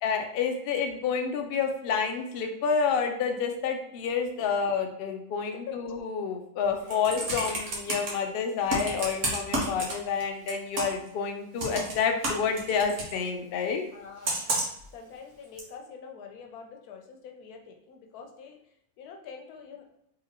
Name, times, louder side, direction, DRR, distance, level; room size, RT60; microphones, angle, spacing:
voice 1, 0.0-13.8, left 6 dB, 65° left, 4 dB, 0.6 m, -29 dB
Computer keyboard, 6.7-8.1 8.7-10.2 10.5-11.1 11.6-13.1 14.2-14.8 15.6-15.7, right 2 dB, 60° right, 1.2 m, -30 dB
voice 2, 13.9-14.4 14.9-18.6 19.0-19.8, left 6 dB, 90° left, 3 dB, 1.2 m, -45 dB
3.8 x 3.0 x 2.9 m, 0.76 s
omnidirectional pair, 1.5 m